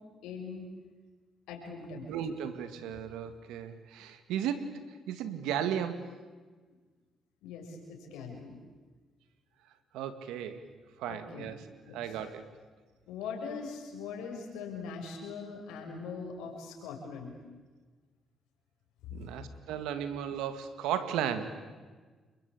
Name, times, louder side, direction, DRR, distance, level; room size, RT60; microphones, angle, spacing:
voice 1, 0.2-0.7 1.5-2.2 7.4-8.5 11.0-11.5 11.9-12.2 13.1-17.3 19.1-19.3, left 5 dB, 85° left, 2 dB, 6.6 m, -41 dB
voice 2, 2.1-4.8 5.1-6.1 9.9-10.6 11.0-11.6 11.9-12.5 19.1-21.5, right 9 dB, 85° right, 10 dB, 2.2 m, -35 dB
29.0 x 23.0 x 8.7 m, 1.4 s
supercardioid pair, 70°, 0 cm